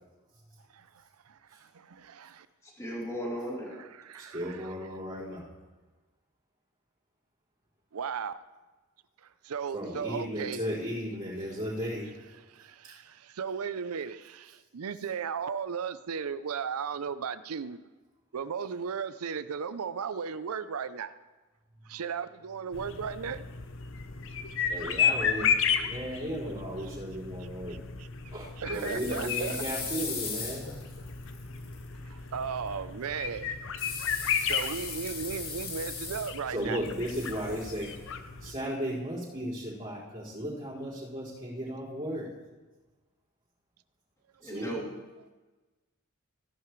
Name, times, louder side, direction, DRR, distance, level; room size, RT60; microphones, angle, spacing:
voice 1, 0.7-2.5 4.1-4.8 7.9-8.4 9.2-10.6 12.5-17.8 18.3-21.1 21.9-23.4 26.8-26.9 27.4-28.1 28.6-29.6 32.0-33.6 34.5-36.8 44.6-44.7, right 6 dB, 80° right, 14 dB, 0.5 m, -36 dB
voice 2, 2.6-3.8 44.4-44.9, equal, 15° left, -4 dB, 2.9 m, -36 dB
voice 3, 4.2-5.4 9.7-12.1 12.8-12.9 24.7-25.5 25.8-27.8 28.3-30.7 36.5-37.9 38.4-42.3 44.4-44.7, equal, 30° right, -13 dB, 4.7 m, -35 dB
sound 1, 22.7-38.5, left 7 dB, 65° left, 0.7 m, -34 dB
sound 2, 28.7-31.8 33.8-36.6 36.8-37.9, left 5 dB, 45° left, 2.0 m, -39 dB
17.0 x 11.0 x 3.2 m, 1.2 s
head